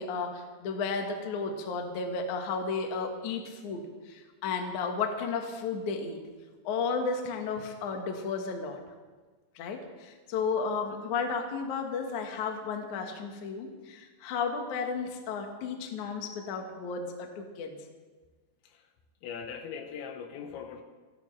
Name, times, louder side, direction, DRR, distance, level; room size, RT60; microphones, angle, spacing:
voice 1, 0.0-6.2 6.6-8.8 9.6-17.8, left 5 dB, 60° left, 3 dB, 2.1 m, -33 dB
voice 2, 19.2-20.8, left 6 dB, 80° left, 5 dB, 3.4 m, -40 dB
29.5 x 11.5 x 3.3 m, 1.4 s
omnidirectional pair, 5.3 m